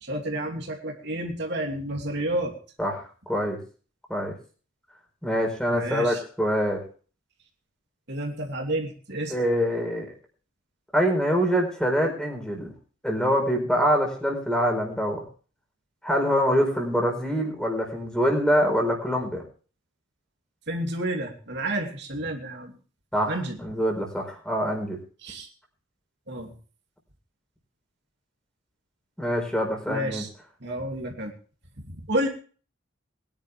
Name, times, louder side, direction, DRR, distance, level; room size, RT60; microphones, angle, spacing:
voice 1, 0.0-2.5 5.7-6.2 8.1-9.4 20.7-22.7 23.3-23.6 25.2-25.5 26.3-26.5 29.9-30.3 30.6-31.3 31.8-32.3, right 1 dB, 55° right, 2 dB, 2.8 m, -30 dB
voice 2, 2.8-3.6 4.1-4.3 5.2-6.8 9.3-10.1 10.9-12.7 13.0-15.2 16.0-19.4 23.1-25.0 29.2-30.2, equal, 5° left, 2 dB, 4.7 m, -25 dB
22.0 x 10.5 x 3.5 m, 0.40 s
head